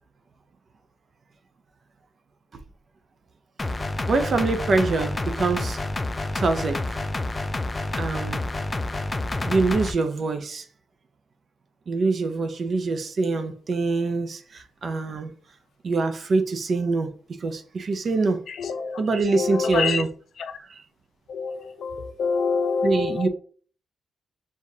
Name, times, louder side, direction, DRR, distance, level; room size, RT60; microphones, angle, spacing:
sound 1, 3.6-9.9, left 2 dB, 20° left, 0.4 m, -29 dB
voice 1, 4.1-5.8 6.3-7.0 7.9-8.4 9.4-10.7 11.9-15.3 15.8-18.4 19.0-20.1 20.6-20.8 22.8-23.3, right 3 dB, 50° right, 0.6 m, -24 dB
voice 2, 18.5-19.0 19.3-20.0 21.3-23.3, left 5 dB, 75° left, 0.6 m, -26 dB
6.4 x 2.4 x 2.7 m
cardioid pair, 105°, 0 cm